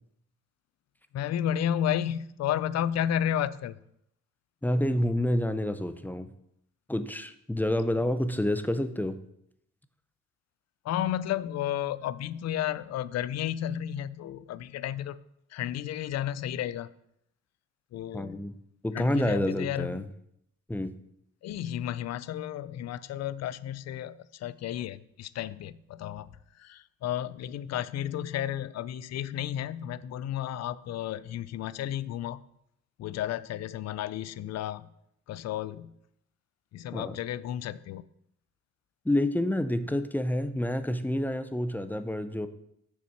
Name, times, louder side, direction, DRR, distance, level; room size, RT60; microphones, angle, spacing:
voice 1, 1.1-3.8 10.8-15.2 15.5-16.9 17.9-18.4 18.9-20.0 21.4-26.3 26.6-32.4 33.0-34.9 35.3-35.9 36.7-38.0, left 11 dB, 60° left, 17 dB, 0.5 m, -32 dB
voice 2, 4.6-6.3 6.9-9.2 18.1-18.5 18.8-20.1 20.7-20.9 36.9-37.2 39.0-42.5, left 1 dB, 5° left, 11 dB, 0.5 m, -28 dB
6.7 x 6.1 x 4.5 m, 0.76 s
cardioid pair, 90°, 30 cm